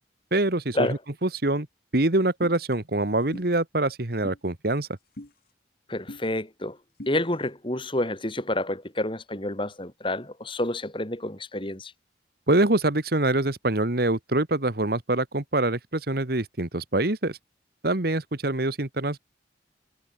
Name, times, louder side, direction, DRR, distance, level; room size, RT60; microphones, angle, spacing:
voice 1, 0.3-0.9 1.2-1.7 1.9-4.9 12.5-17.4 17.8-19.2, right 2 dB, 60° right, 1.8 m, -25 dB
sound 1, 2.4-2.6 3.3-3.5 4.2-4.4 5.2-5.3 6.1-6.2 7.0-7.1, left 1 dB, 55° left, 1.9 m, -39 dB
voice 2, 5.9-6.8 7.1-11.9, left 1 dB, 30° left, 3.0 m, -29 dB
head